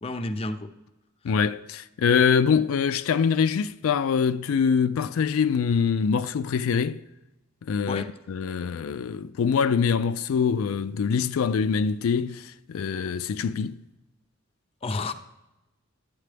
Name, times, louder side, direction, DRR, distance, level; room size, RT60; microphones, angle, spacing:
voice 1, 0.0-0.7 2.1-2.2 7.9-8.1 14.8-15.1, left 2 dB, 30° left, 0.5 m, -31 dB
voice 2, 1.2-7.0 7.6-13.8, left 6 dB, 90° left, 0.4 m, -24 dB
12.0 x 8.3 x 3.3 m
head